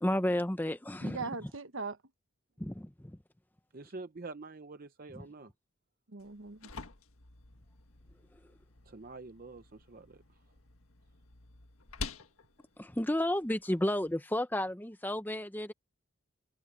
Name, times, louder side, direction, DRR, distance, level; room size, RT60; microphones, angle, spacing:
voice 1, 0.0-1.2 2.6-3.2 5.1-5.3 12.8-15.7, left 1 dB, 10° left, 0.7 m, -32 dB
voice 2, 1.0-2.0 6.1-6.7, right 4 dB, 70° right, 1.2 m, -40 dB
voice 3, 3.7-5.5 8.9-10.2, right 3 dB, 45° right, 0.6 m, -46 dB
sound 1, 6.2-14.2, left 4 dB, 90° left, 1.7 m, -48 dB
head